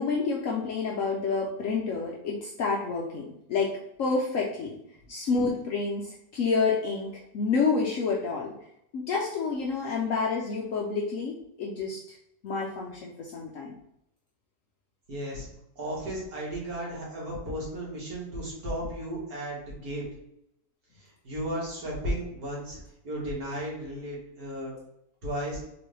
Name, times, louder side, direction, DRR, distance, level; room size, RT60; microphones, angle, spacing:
voice 1, 0.0-4.8 5.1-8.5 8.9-12.0 12.4-13.7, left 4 dB, 65° left, -2 dB, 0.8 m, -29 dB
voice 2, 15.1-15.5 15.8-20.0 21.0-22.8 23.0-24.8 25.2-25.6, equal, 60° right, -5 dB, 2.0 m, -34 dB
3.9 x 3.0 x 3.1 m, 0.79 s
omnidirectional pair, 1.8 m